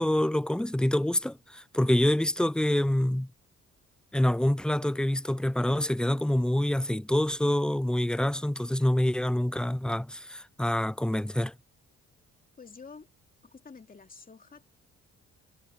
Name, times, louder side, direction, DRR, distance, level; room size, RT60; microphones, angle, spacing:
voice 1, 0.0-3.3 4.1-11.5, left 1 dB, 5° left, 0.5 m, -26 dB
voice 2, 12.6-13.1 13.4-14.7, left 5 dB, 30° left, 2.8 m, -48 dB
cardioid pair, 90°, 30 cm